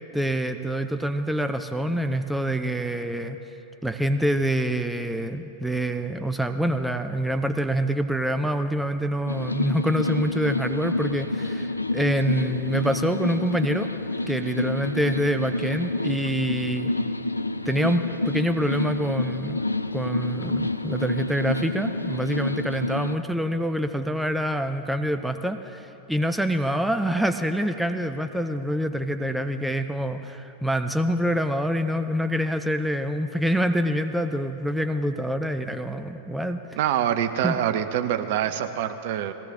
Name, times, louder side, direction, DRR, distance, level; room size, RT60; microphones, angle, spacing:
voice 1, 0.1-3.4 3.8-13.9 14.3-16.9 17.7-19.6 19.9-36.8 37.4-37.6, equal, 5° right, 8 dB, 0.5 m, -26 dB
sound 1, 9.3-23.2, left 2 dB, 85° left, 0.4 m, -28 dB
voice 2, 36.8-39.3, right 10 dB, 50° right, 9 dB, 0.7 m, -25 dB
20.0 x 16.5 x 3.6 m, 2.9 s
figure-of-eight pair, 90°, 0 cm